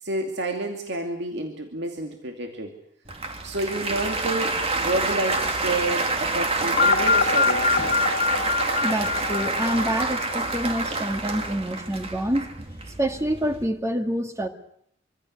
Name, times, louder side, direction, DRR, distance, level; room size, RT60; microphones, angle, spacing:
voice 1, 0.0-2.8 3.4-8.0, right 2 dB, 65° right, 3 dB, 2.6 m, -29 dB
Applause, 3.1-13.7, right 3 dB, 35° right, 2.5 m, -27 dB
sound 1, 6.8-10.7, left 5 dB, 55° left, 2.1 m, -24 dB
voice 2, 8.8-12.5 13.0-14.5, equal, 15° right, 6 dB, 2.1 m, -27 dB
25.5 x 25.0 x 6.6 m, 0.69 s
head